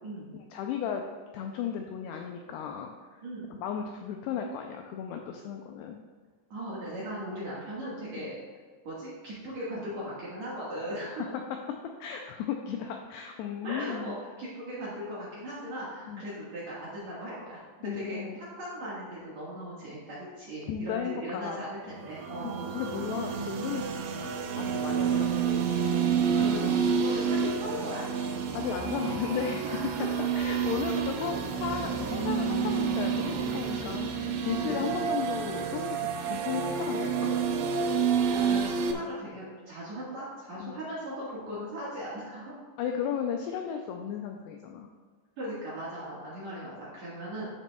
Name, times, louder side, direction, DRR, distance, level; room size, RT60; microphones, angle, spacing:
voice 1, 0.3-1.0 1.3-2.9 3.2-6.0 8.2-8.3 11.1-11.2 12.0-14.2 16.1-16.2 17.8-18.4 20.7-21.6 22.4-25.6 28.5-29.7 30.4-36.0 36.3-37.3 39.0-39.1 40.6-40.8 42.8-44.9, left 8 dB, 90° left, 3 dB, 2.3 m, -35 dB
voice 2, 3.2-3.6 6.5-8.4 8.8-11.4 13.6-22.7 26.3-28.1 29.6-30.3 34.6-34.9 38.1-42.6 45.4-47.5, equal, 55° right, -8 dB, 2.1 m, -38 dB
sound 1, 22.0-38.9, right 6 dB, 85° right, 2.1 m, -29 dB
12.0 x 7.3 x 2.3 m, 1.5 s
omnidirectional pair, 5.2 m